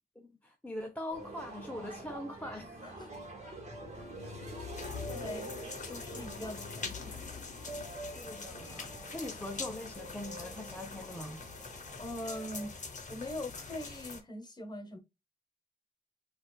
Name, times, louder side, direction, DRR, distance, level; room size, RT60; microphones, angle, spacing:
voice 1, 0.2-3.1 4.2-4.3 4.9-5.3 5.6-5.7 6.1-6.7 8.2-11.4, left 1 dB, 10° left, 0.5 m, -43 dB
sound 1, 1.1-12.7, right 2 dB, 45° right, 1.4 m, -47 dB
sound 2, 3.5-8.3, left 7 dB, 65° left, 0.4 m, -46 dB
sound 3, 4.8-14.2, left 4 dB, 45° left, 0.8 m, -44 dB
voice 2, 5.1-5.5 5.9-7.4 12.0-12.7 13.1-15.0, left 1 dB, 25° left, 1.1 m, -42 dB
4.2 x 2.4 x 2.2 m
cardioid pair, 85°, 17 cm